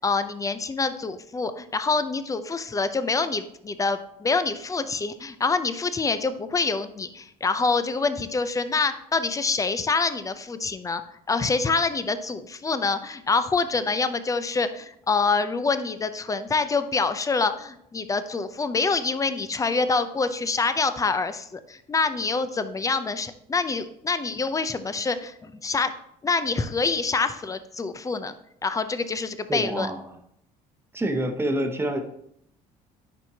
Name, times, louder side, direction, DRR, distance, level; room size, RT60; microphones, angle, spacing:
voice 1, 0.0-11.0 11.3-25.9 26.2-28.3 28.6-29.9, left 4 dB, 20° left, 11 dB, 0.5 m, -26 dB
voice 2, 29.5-30.2 30.9-32.0, right 1 dB, 15° right, 5 dB, 1.0 m, -27 dB
10.5 x 4.3 x 2.8 m, 0.75 s
supercardioid pair, 90°, 17 cm